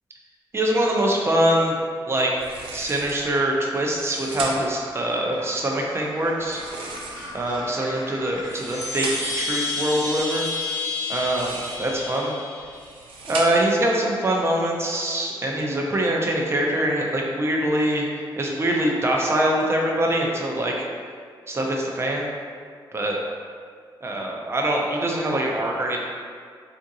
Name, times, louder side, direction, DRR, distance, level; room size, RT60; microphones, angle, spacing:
voice 1, 0.5-1.8 2.1-2.3 2.7-6.6 7.3-10.4 11.1-12.3 13.3-20.7 21.5-22.3 22.9-23.2 24.0-26.0, right 1 dB, 30° right, -1 dB, 0.5 m, -23 dB
sound 1, 2.4-3.2 3.8-4.8 6.4-7.5 8.3-9.4 11.1-12.0 12.6-13.8, right 3 dB, 90° right, 0.4 m, -36 dB
Gull seagull, 4.4-10.2, equal, 65° right, 0.9 m, -41 dB
Chime, 8.4-13.1, left 3 dB, 50° left, 1.0 m, -30 dB
3.6 x 2.5 x 2.7 m, 2.1 s
cardioid pair, 100°, 9 cm